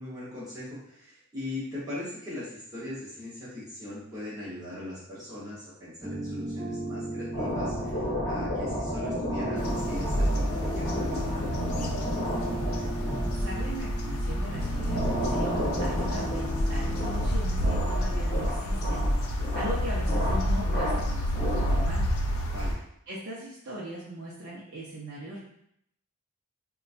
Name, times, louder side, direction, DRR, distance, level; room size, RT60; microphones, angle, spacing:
voice 1, 0.0-11.5 22.5-22.8, left 1 dB, 15° right, -10 dB, 0.9 m, -39 dB
sound 1, 6.0-17.2, right 1 dB, ahead, 1.2 m, -36 dB
sound 2, 7.3-22.0, equal, 40° left, 1.0 m, -33 dB
sound 3, 9.6-22.7, equal, 70° left, 0.5 m, -29 dB
voice 2, 13.2-22.1 23.1-25.4, right 1 dB, 50° right, -6 dB, 0.5 m, -39 dB
4.0 x 2.2 x 2.4 m, 0.73 s
head